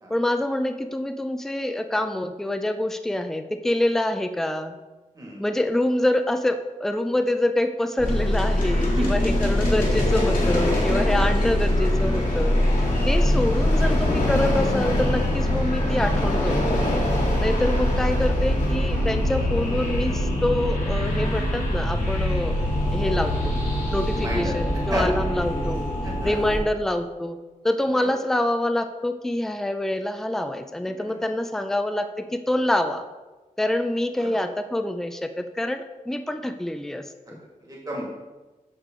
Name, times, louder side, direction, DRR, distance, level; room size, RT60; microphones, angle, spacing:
voice 1, 0.1-4.7 5.4-12.6 13.1-16.8 17.4-22.6 22.9-23.6 23.9-25.9 26.2-27.4 27.6-33.0 33.6-37.4, left 1 dB, 5° left, 8 dB, 0.4 m, -26 dB
voice 2, 5.1-5.5 9.0-9.1 12.9-13.2 19.2-19.3 23.0-23.1 24.1-24.5 24.9-25.0 26.0-26.4 27.9-28.1 34.2-34.3 37.6-38.0, right 1 dB, 25° right, -4 dB, 2.1 m, -31 dB
sound 1, 8.0-26.6, left 1 dB, 80° left, 2.2 m, -23 dB
8.2 x 6.6 x 3.8 m, 1.2 s
wide cardioid pair, 170°, 14 cm